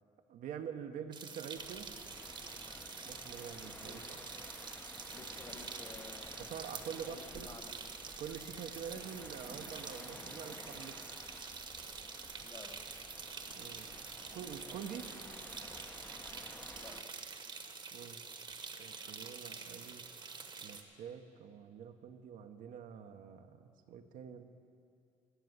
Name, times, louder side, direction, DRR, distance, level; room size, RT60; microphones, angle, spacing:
voice 1, 0.3-1.9 3.1-4.2 6.4-7.5 8.2-11.1 13.5-14.0 14.3-15.1 17.9-18.2 18.8-20.0 20.6-24.4, right 8 dB, 65° right, 6 dB, 0.8 m, -46 dB
sound 1, 1.1-20.8, right 5 dB, 35° right, 1.0 m, -47 dB
sound 2, 1.5-17.0, left 2 dB, 15° left, 0.7 m, -53 dB
voice 2, 3.8-4.2 5.1-6.5 7.0-7.7 12.4-13.1 13.4-13.5 14.3-15.3 16.7-17.0, left 3 dB, 30° left, 4 dB, 1.5 m, -54 dB
13.0 x 7.0 x 9.4 m, 2.5 s
cardioid pair, 95°, 14 cm